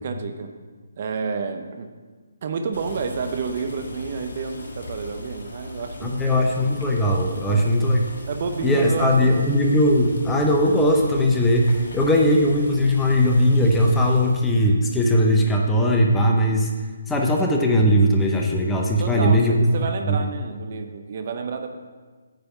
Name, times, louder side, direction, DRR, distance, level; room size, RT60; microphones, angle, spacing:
voice 1, 0.0-0.5 1.0-1.9 2.4-6.4 7.4-7.7 8.3-9.5 19.0-21.8, right 5 dB, 45° right, 6 dB, 0.6 m, -30 dB
Boiling, 2.7-14.5, left 1 dB, 70° left, 1.7 m, -38 dB
voice 2, 6.0-8.0 8.6-16.7 17.1-19.7 20.1-20.2, equal, 10° left, 0 dB, 0.6 m, -19 dB
9.0 x 3.4 x 6.6 m, 1.4 s
hypercardioid pair, 155°, 0 cm